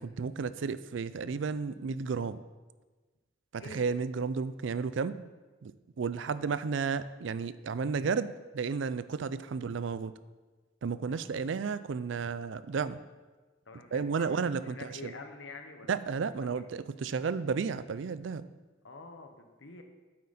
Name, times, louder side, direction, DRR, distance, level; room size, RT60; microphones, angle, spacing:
voice 1, 0.0-2.4 3.5-5.1 5.6-5.7 6.0-10.1 10.8-13.0 13.9-15.1 15.9-18.4, right 5 dB, 70° right, 15 dB, 0.4 m, -32 dB
voice 2, 6.3-6.6 11.1-11.4 13.7-16.0 16.3-16.7 18.8-19.8, left 3 dB, 70° left, 5 dB, 1.1 m, -48 dB
8.6 x 8.5 x 4.2 m, 1.3 s
head